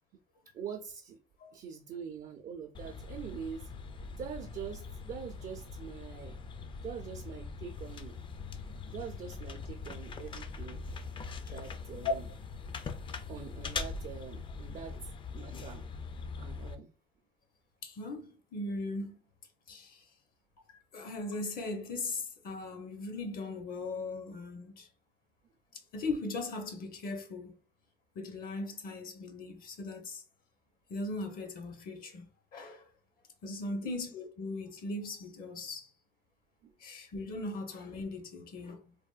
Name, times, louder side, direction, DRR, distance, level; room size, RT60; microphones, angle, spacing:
voice 1, 0.5-1.2 1.5-3.7 4.2-6.4 6.8-8.1 8.9-10.8 11.5-12.2 13.3-15.0 15.3-15.9 16.4-16.9 33.8-33.9, right 7 dB, 50° right, 0.5 m, -44 dB
sound 1, 2.7-16.8, left 4 dB, 30° left, 0.4 m, -42 dB
voice 2, 17.8-19.2 19.7-20.1 20.7-24.9 25.7-27.6 28.1-30.2 30.9-32.9 33.4-35.9 36.8-38.9, left 2 dB, 60° left, 0.7 m, -39 dB
3.4 x 2.2 x 2.3 m
cardioid pair, 110°, 17 cm